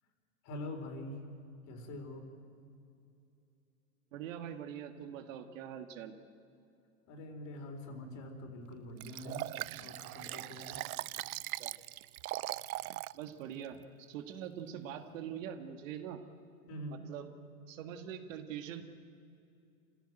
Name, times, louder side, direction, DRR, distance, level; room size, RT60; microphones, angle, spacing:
voice 1, 0.4-1.2 1.7-2.2 7.1-9.5 9.8-10.8 16.7-17.0, left 1 dB, 40° left, 4 dB, 4.3 m, -44 dB
voice 2, 4.1-6.1 11.5-11.7 13.2-13.8 14.1-16.2 17.1-17.3 17.7-18.8, right 9 dB, 65° right, 6 dB, 2.0 m, -43 dB
Liquid, 9.0-13.2 13.6-13.7, right 16 dB, 80° right, 0.5 m, -40 dB
25.5 x 16.0 x 9.1 m, 2.6 s
hypercardioid pair, 115°, 42 cm